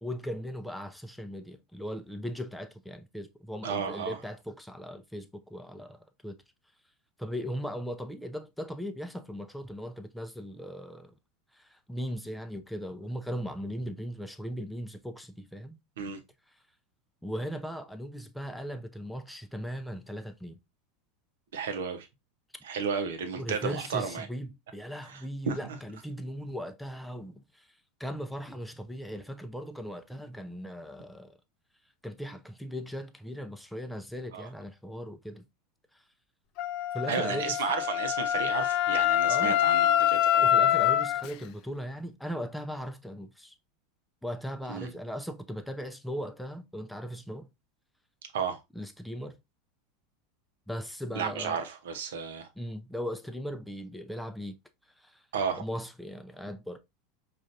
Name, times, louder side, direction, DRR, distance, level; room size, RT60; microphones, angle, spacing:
voice 1, 0.0-6.4 7.2-11.1 11.5-15.8 17.2-20.6 23.4-27.7 28.0-31.4 32.0-35.5 35.9-36.0 36.9-37.6 39.2-39.6 40.4-43.5 44.2-47.5 48.7-49.4 50.7-51.6 52.6-54.6 55.0-55.2 55.6-56.8, equal, ahead, 0.5 m, -38 dB
voice 2, 3.6-4.2 16.0-16.2 21.5-22.1 22.6-24.3 25.0-25.6 34.3-34.5 37.1-40.5 44.7-44.9 48.3-48.6 51.1-52.5 55.3-55.6, right 6 dB, 75° right, 0.7 m, -33 dB
Wind instrument woodwind instrument, 36.6-41.3, left 11 dB, 55° left, 0.4 m, -25 dB
5.1 x 2.4 x 2.5 m
hypercardioid pair, 85°, 0 cm